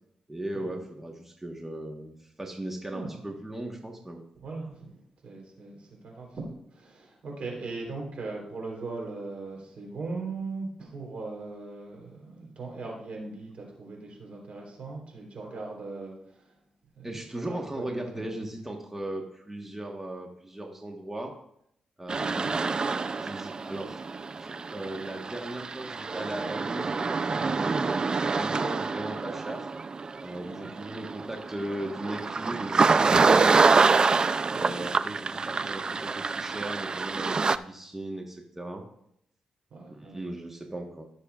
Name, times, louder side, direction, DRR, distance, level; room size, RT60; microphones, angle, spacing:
voice 1, 0.3-4.2 17.0-21.3 22.0-22.8 23.2-24.0 24.4-29.7 30.2-33.8 34.5-38.8 39.9-41.1, right 1 dB, 15° right, 1 dB, 1.3 m, -37 dB
voice 2, 4.4-16.6 16.9-18.3 22.3-22.6 30.5-30.7 34.5-34.7 35.4-35.6 39.7-40.2, right 3 dB, 65° right, 0 dB, 3.5 m, -39 dB
sound 1, 22.1-37.6, right 4 dB, 40° right, 0.4 m, -26 dB
15.0 x 6.8 x 2.4 m, 0.73 s
cardioid pair, 70°, 2 cm